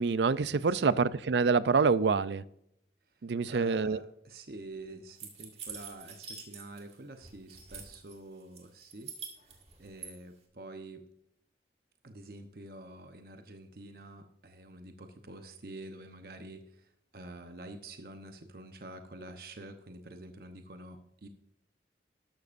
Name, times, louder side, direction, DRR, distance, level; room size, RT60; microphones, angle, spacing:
voice 1, 0.0-2.4 3.2-4.0, right 5 dB, 80° right, 0.5 m, -26 dB
voice 2, 0.7-1.0 3.1-9.1 9.8-11.1 12.0-21.3, right 2 dB, 55° right, 0.9 m, -47 dB
sound 1, 5.2-6.9 7.2-8.1 8.6-10.1, right 6 dB, 35° right, 2.1 m, -45 dB
13.5 x 12.0 x 2.6 m
head